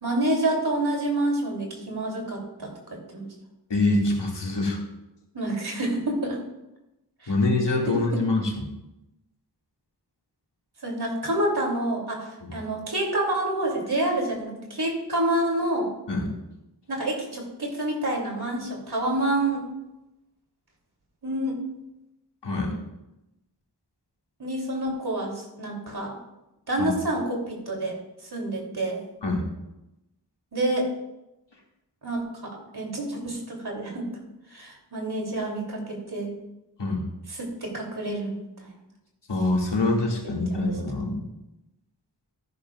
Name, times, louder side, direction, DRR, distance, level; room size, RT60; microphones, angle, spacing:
voice 1, 0.0-3.3 5.3-6.4 7.2-7.3 7.9-8.0 10.8-15.9 16.9-19.6 21.2-21.6 24.4-26.2 26.7-28.0 28.3-29.0 30.5-30.9 32.0-34.1 34.5-36.3 37.3-38.7 40.2-40.7, right 1 dB, 65° right, 0 dB, 3.3 m, -28 dB
voice 2, 3.7-4.8 7.3-8.7 12.4-12.5 16.1-16.3 22.4-22.8 26.8-26.9 29.2-29.4 36.8-37.0 39.3-41.2, left 2 dB, 80° left, -2 dB, 2.4 m, -25 dB
13.5 x 10.5 x 2.5 m, 0.94 s
wide cardioid pair, 50°, 42 cm